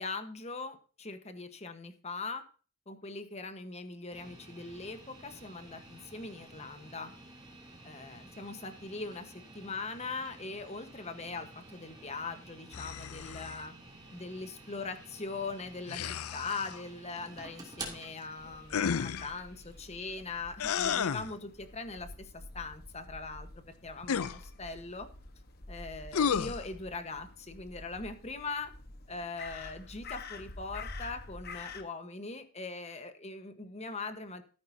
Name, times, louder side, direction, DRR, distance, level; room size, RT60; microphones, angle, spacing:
voice 1, 0.0-2.4 2.9-7.1 7.8-13.7 14.1-25.1 25.7-28.7 29.1-34.4, left 3 dB, 30° left, 8 dB, 1.2 m, -41 dB
sound 1, 4.1-22.2, right 2 dB, 20° right, 2.8 m, -51 dB
sound 2, 12.7-13.7 15.9-16.8 18.7-19.3 20.6-21.3 24.0-24.4 26.1-26.6, left 7 dB, 80° left, 0.5 m, -32 dB
Crow, 18.4-31.8, left 3 dB, 45° left, 1.3 m, -48 dB
13.5 x 10.0 x 2.8 m, 0.37 s
head